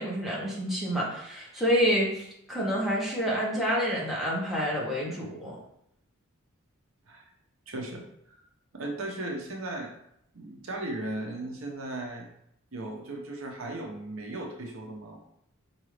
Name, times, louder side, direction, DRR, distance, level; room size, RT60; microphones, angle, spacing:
voice 1, 0.0-5.6, equal, ahead, -6 dB, 1.0 m, -28 dB
voice 2, 7.7-8.0 8.7-9.9 10.3-12.3 12.7-15.2, right 2 dB, 70° right, 1 dB, 0.7 m, -36 dB
4.8 x 2.6 x 3.2 m, 0.74 s
head